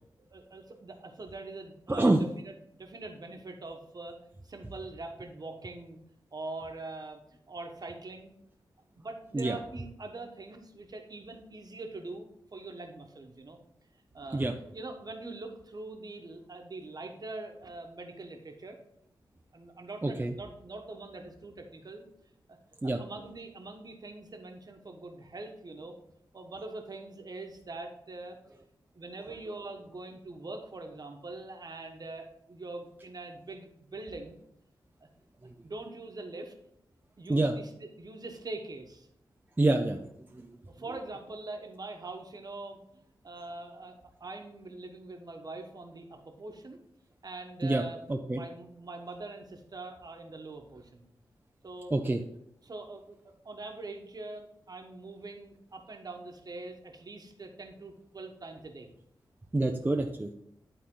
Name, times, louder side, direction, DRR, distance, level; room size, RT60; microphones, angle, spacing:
voice 1, 0.3-4.2 4.4-6.0 6.3-7.2 7.5-8.3 8.9-13.6 14.1-18.8 19.5-22.0 22.5-22.6 22.8-26.0 26.3-28.4 28.9-34.4 35.0-35.1 35.6-36.5 37.2-39.1 40.7-46.8 47.2-51.1 51.6-52.0 52.6-58.9, right 2 dB, 50° right, 4 dB, 1.3 m, -43 dB
voice 2, 1.9-2.2 9.3-9.6 14.3-14.5 20.0-20.3 22.8-23.0 37.3-37.5 39.6-40.0 40.3-40.5 47.6-47.8 48.1-48.4 51.9-52.2 59.5-60.3, right 2 dB, 20° right, 3 dB, 0.6 m, -26 dB
11.0 x 3.8 x 3.8 m, 0.75 s
wide cardioid pair, 75°, 9 cm